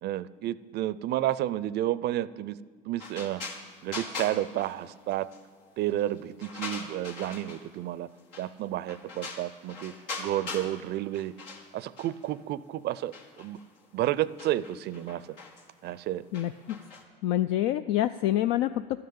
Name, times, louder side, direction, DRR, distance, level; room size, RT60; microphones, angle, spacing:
voice 1, 0.0-2.6 2.9-3.5 3.8-5.3 5.8-8.1 8.4-11.3 11.7-13.6 13.9-15.4 15.8-16.2, right 13 dB, 50° right, 18 dB, 0.5 m, -31 dB
sound 1, 3.0-5.4 5.8-7.8 8.3-8.6 8.9-10.8 11.1-12.4 13.0-17.0, left 3 dB, 85° left, 1.6 m, -41 dB
voice 2, 16.3-16.8 17.2-19.0, left 13 dB, 70° left, 11 dB, 0.4 m, -27 dB
12.5 x 6.7 x 8.7 m, 1.5 s
supercardioid pair, 85°, 21 cm